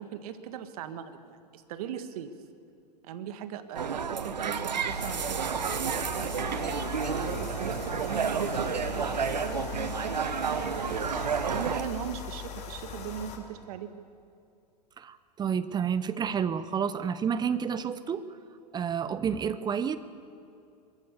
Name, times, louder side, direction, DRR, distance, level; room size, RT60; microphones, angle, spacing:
voice 1, 0.0-2.3 3.0-13.9, right 9 dB, 60° right, 9 dB, 1.6 m, -39 dB
sound 1, 3.7-11.8, right 6 dB, 90° right, 1.2 m, -31 dB
sound 2, 4.9-13.4, left 7 dB, 30° left, 2.7 m, -40 dB
voice 2, 15.0-18.3 18.7-20.0, right 7 dB, 20° right, 14 dB, 0.8 m, -30 dB
23.5 x 14.0 x 8.3 m, 2.5 s
hypercardioid pair, 110°, 21 cm